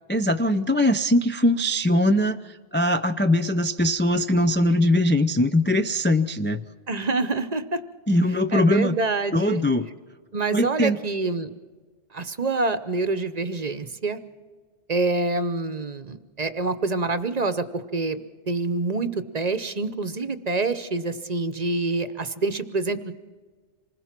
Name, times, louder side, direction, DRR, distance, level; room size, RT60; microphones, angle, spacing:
voice 1, 0.1-6.6 8.1-9.0 9.3-9.9 10.5-11.0, left 1 dB, 20° left, 7 dB, 0.3 m, -21 dB
voice 2, 6.9-7.8 8.5-9.6 10.3-11.5 12.1-14.2 14.9-23.1, right 3 dB, 40° right, 12 dB, 0.9 m, -26 dB
26.5 x 20.5 x 5.9 m, 1.4 s
omnidirectional pair, 1.2 m